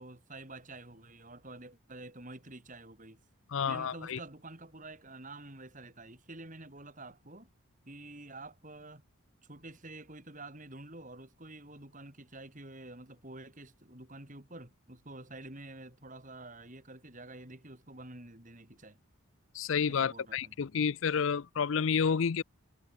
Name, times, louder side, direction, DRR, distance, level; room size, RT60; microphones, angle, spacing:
voice 1, 0.0-3.2 3.7-7.5 7.9-9.0 9.4-19.0 19.9-20.6, right 2 dB, 35° right, 3.8 m, -48 dB
voice 2, 3.5-4.2 19.5-22.4, left 6 dB, 60° left, 0.5 m, -30 dB
head